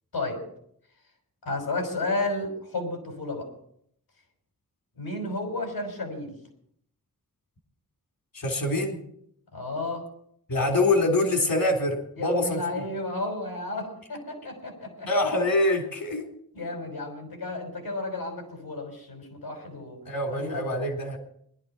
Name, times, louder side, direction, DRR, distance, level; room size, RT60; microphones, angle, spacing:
voice 1, 1.4-3.5 5.0-6.4 9.5-10.0 12.2-15.1 16.5-20.0 20.3-20.7, left 2 dB, 90° left, 2 dB, 5.8 m, -32 dB
voice 2, 8.3-9.0 10.5-12.6 15.1-16.3 20.1-21.2, left 2 dB, 70° left, 2 dB, 3.7 m, -25 dB
20.0 x 12.0 x 4.5 m, 0.68 s
wide cardioid pair, 80°, 36 cm